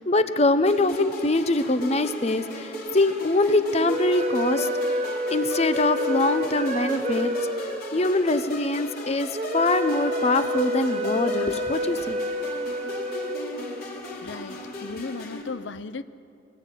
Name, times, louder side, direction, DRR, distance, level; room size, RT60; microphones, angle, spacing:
voice 1, 0.0-4.7 5.3-7.3 7.9-9.3 9.5-12.2, left 2 dB, 35° left, 10 dB, 1.0 m, -23 dB
sound 1, 0.7-15.4, left 1 dB, 50° left, 3.8 m, -37 dB
sound 2, 3.7-14.1, equal, 35° right, 1.3 m, -29 dB
voice 2, 14.2-16.0, left 4 dB, 75° left, 13 dB, 0.7 m, -36 dB
24.5 x 19.0 x 9.0 m, 2.4 s
head